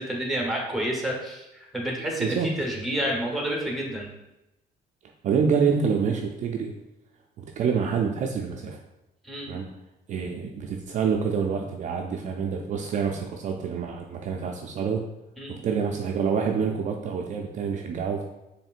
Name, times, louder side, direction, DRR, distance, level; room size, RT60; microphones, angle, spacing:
voice 1, 0.0-1.4 1.7-4.1 9.2-9.6 15.4-15.6, right 1 dB, ahead, -1 dB, 1.0 m, -29 dB
voice 2, 2.2-2.5 5.2-6.7 7.4-8.8 9.5-9.7 10.1-15.1 15.5-18.2, right 6 dB, 45° right, 2 dB, 0.4 m, -27 dB
4.3 x 3.2 x 2.4 m, 0.95 s
cardioid pair, 110°, 17 cm